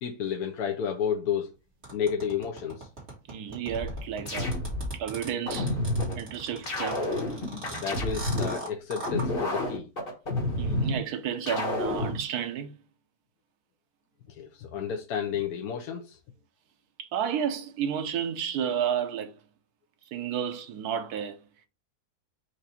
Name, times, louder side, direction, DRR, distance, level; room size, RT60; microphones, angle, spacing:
voice 1, 0.0-1.5 1.9-2.9 7.7-9.9 14.4-16.2, left 7 dB, 75° left, 1.2 m, -31 dB
sound 1, 1.8-9.3, right 2 dB, 45° right, 2.0 m, -39 dB
voice 2, 3.3-4.5 4.9-5.7 6.2-7.0 10.6-12.7 17.0-19.3 20.1-21.4, right 8 dB, 90° right, 1.2 m, -31 dB
sound 2, 3.7-5.0 5.5-6.2 6.7-8.6 9.1-11.0 11.5-12.2, left 1 dB, 40° left, 1.4 m, -29 dB
4.7 x 2.5 x 4.2 m
omnidirectional pair, 1.6 m